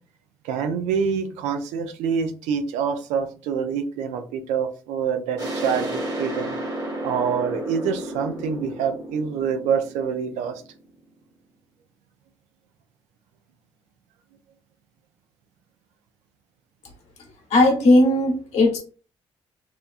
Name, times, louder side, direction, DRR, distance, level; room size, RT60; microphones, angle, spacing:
voice 1, 0.4-6.5 7.0-10.6, right 6 dB, 80° right, 7 dB, 0.4 m, -26 dB
sound 1, 5.4-10.9, right 1 dB, 35° right, 1.2 m, -32 dB
voice 2, 17.5-18.8, left 1 dB, 70° left, 2 dB, 1.0 m, -17 dB
2.7 x 2.3 x 2.4 m, 0.38 s
hypercardioid pair, 50°, 12 cm